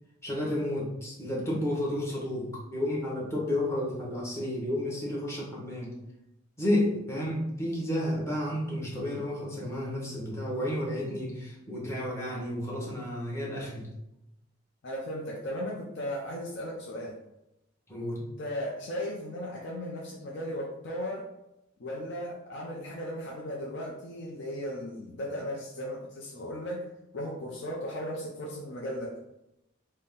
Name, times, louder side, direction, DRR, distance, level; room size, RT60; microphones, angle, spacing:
voice 1, 0.2-6.0 6.6-13.9 17.9-18.2, left 1 dB, 15° left, -4 dB, 1.0 m, -31 dB
voice 2, 14.8-17.2 18.2-21.3 21.8-26.9 27.1-29.1, equal, 60° left, -2 dB, 0.6 m, -36 dB
4.2 x 2.1 x 3.6 m, 0.87 s
head